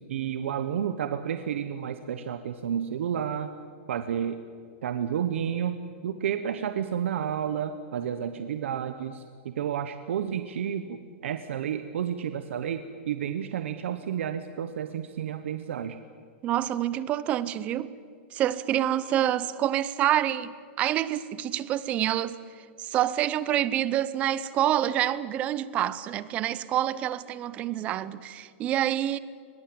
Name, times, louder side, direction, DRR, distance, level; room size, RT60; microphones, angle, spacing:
voice 1, 0.1-3.5 3.9-4.4 4.8-16.0, right 9 dB, 85° right, 1.1 m, -31 dB
voice 2, 16.4-17.9 18.3-22.4 22.8-29.2, right 12 dB, 20° right, 0.6 m, -27 dB
21.5 x 21.0 x 8.7 m
supercardioid pair, 175°, 7 cm